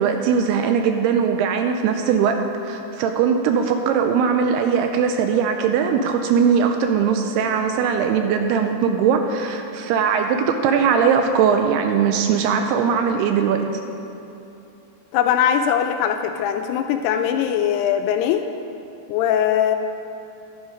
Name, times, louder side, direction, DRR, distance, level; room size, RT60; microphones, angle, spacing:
voice 1, 0.0-2.4 2.6-13.7, right 6 dB, 80° right, 5 dB, 2.4 m, -20 dB
voice 2, 15.1-18.4 19.1-19.8, left 9 dB, 85° left, 6 dB, 2.4 m, -20 dB
11.5 x 9.9 x 5.0 m, 2.9 s
omnidirectional pair, 4.9 m